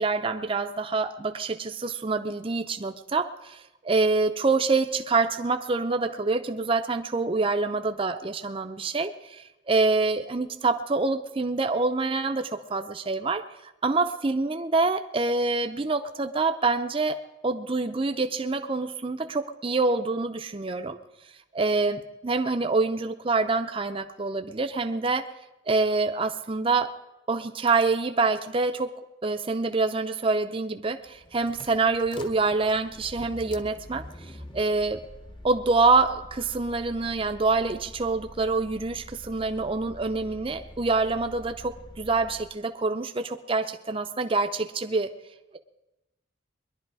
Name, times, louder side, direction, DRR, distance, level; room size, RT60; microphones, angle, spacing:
voice 1, 0.0-13.5 13.8-21.0 21.5-25.3 25.7-26.9 27.3-28.9 29.2-34.0 34.5-35.0 35.4-45.1, right 3 dB, 25° right, 6 dB, 0.5 m, -26 dB
sound 1, 31.0-42.6, left 1 dB, 25° left, 0.9 m, -46 dB
21.5 x 11.0 x 4.7 m, 0.96 s
head